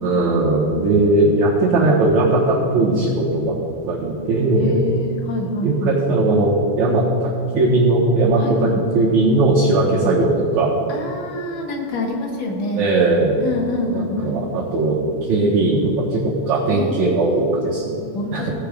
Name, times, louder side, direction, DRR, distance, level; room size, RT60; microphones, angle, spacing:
voice 1, 0.0-3.5 3.9-4.8 5.6-10.8 12.7-13.4 13.9-15.0 15.3-18.0 18.3-18.5, right 2 dB, 70° right, -10 dB, 2.9 m, -18 dB
voice 2, 4.6-6.0 8.4-8.8 9.8-10.0 10.9-12.9 13.4-14.4 16.7-17.4 18.1-18.5, left 2 dB, 50° left, -1 dB, 1.7 m, -27 dB
17.0 x 5.7 x 5.1 m, 2.4 s
omnidirectional pair, 3.4 m